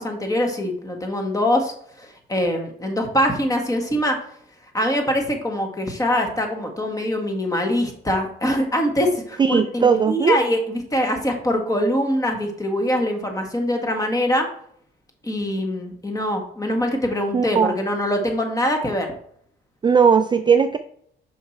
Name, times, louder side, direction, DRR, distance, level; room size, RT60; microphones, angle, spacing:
voice 1, 0.0-4.2 4.7-14.5 15.2-19.1, equal, 15° left, 3 dB, 1.6 m, -23 dB
voice 2, 9.4-10.4 17.3-17.8 19.8-20.8, right 6 dB, 25° right, 9 dB, 0.4 m, -17 dB
5.7 x 4.6 x 4.3 m, 0.64 s
cardioid pair, 90°, 20 cm